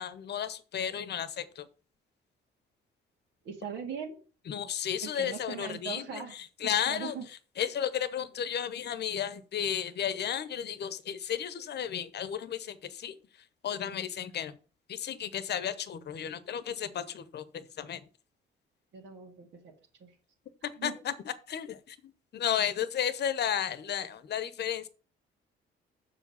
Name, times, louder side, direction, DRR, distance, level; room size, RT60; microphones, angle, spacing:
voice 1, 0.0-1.7 4.5-7.1 7.6-13.1 13.6-14.5 14.9-18.0 20.6-21.1 21.5-24.9, left 9 dB, 55° left, 13 dB, 0.9 m, -33 dB
voice 2, 3.4-4.2 5.0-6.4 6.9-7.2 18.9-19.7 20.0-20.1 20.8-20.9, right 6 dB, 75° right, 0 dB, 2.2 m, -40 dB
6.7 x 4.8 x 6.9 m, 0.38 s
cardioid pair, 90°, 20 cm